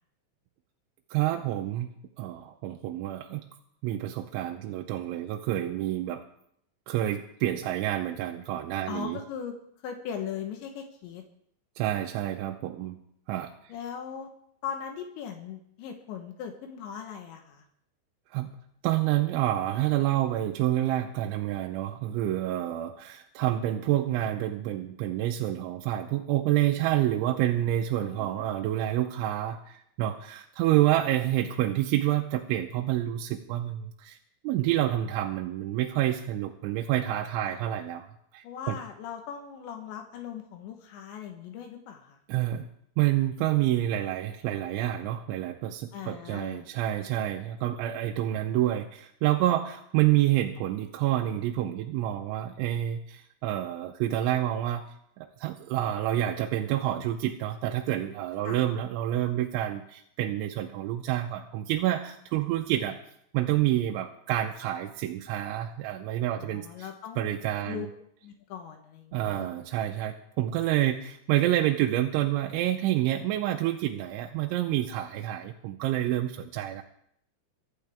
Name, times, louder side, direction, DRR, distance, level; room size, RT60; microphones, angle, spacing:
voice 1, 1.1-1.9 2.2-3.5 3.8-6.2 6.9-9.2 11.8-13.0 13.3-13.5 18.3-18.5 18.8-34.2 34.4-38.1 38.3-38.8 42.3-42.7 43.0-54.8 55.2-63.0 63.3-66.9 67.2-67.9 69.1-76.8, right 13 dB, 85° right, 3 dB, 3.2 m, -28 dB
voice 2, 8.9-9.5 9.8-11.2 13.7-14.3 14.6-17.6 28.0-28.5 37.4-37.7 38.4-42.2 45.9-46.7 58.4-58.6 66.3-67.4 67.7-67.9 68.2-69.5, left 8 dB, 75° left, 4 dB, 3.4 m, -39 dB
23.5 x 12.0 x 3.5 m, 0.70 s
omnidirectional pair, 5.3 m